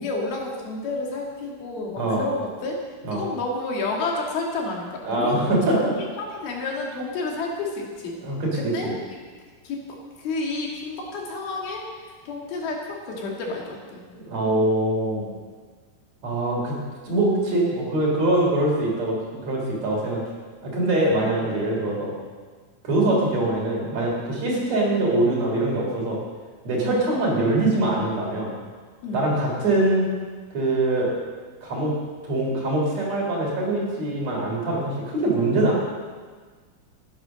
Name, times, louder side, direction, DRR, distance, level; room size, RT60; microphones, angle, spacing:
voice 1, 0.0-2.8 3.1-5.4 5.7-8.2 8.5-9.2 9.6-14.0 21.1-21.3 24.5-24.7 26.8-27.1 29.0-29.3, left 3 dB, 90° left, -1 dB, 4.2 m, -30 dB
voice 2, 5.0-5.9 8.2-8.9 14.1-15.3 16.2-16.7 17.0-20.2 20.6-22.1 22.8-26.2 26.6-28.5 29.1-30.1 30.5-31.2 31.6-31.9 32.2-35.8, right 2 dB, 50° right, -3 dB, 4.6 m, -23 dB
14.0 x 11.0 x 6.4 m, 1.5 s
omnidirectional pair, 4.2 m